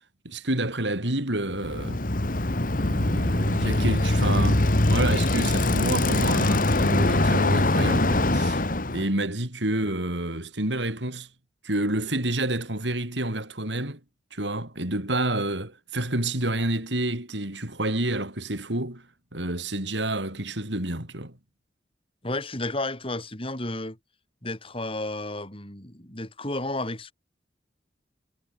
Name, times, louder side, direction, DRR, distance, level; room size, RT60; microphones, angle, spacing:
voice 1, 0.2-2.0 2.8-8.6 8.9-11.3 11.6-14.0 14.3-19.0 19.3-21.3, right 1 dB, 85° right, 5.7 m, -29 dB
Bicycle, 1.5-9.1, left 1 dB, 50° left, 2.0 m, -23 dB
voice 2, 22.2-24.0 24.4-27.1, left 2 dB, 30° left, 5.7 m, -32 dB
head